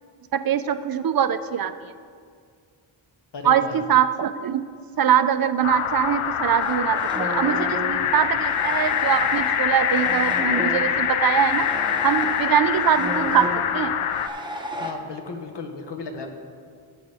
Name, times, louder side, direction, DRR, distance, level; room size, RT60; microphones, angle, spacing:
voice 1, 0.3-1.9 3.4-4.6 5.0-11.7 12.0-13.9, right 9 dB, 50° right, 11 dB, 0.5 m, -22 dB
voice 2, 3.3-3.8 14.8-16.3, left 4 dB, 55° left, 4 dB, 1.2 m, -35 dB
sound 1, 5.6-14.3, left 9 dB, 90° left, 0.6 m, -24 dB
sound 2, 6.6-14.9, equal, 10° right, 0.9 m, -32 dB
16.0 x 6.9 x 3.4 m, 2.1 s
wide cardioid pair, 120°, 49 cm